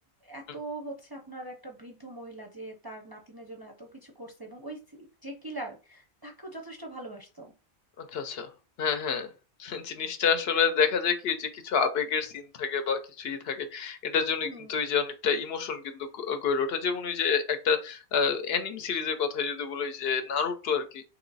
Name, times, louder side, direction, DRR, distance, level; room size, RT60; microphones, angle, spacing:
voice 1, 0.2-7.5 14.4-14.8, right 2 dB, 30° right, 2 dB, 0.5 m, -42 dB
voice 2, 8.0-8.5 8.8-9.3 9.6-21.0, left 6 dB, 70° left, 8 dB, 0.8 m, -28 dB
3.1 x 3.0 x 3.9 m, 0.33 s
omnidirectional pair, 1.1 m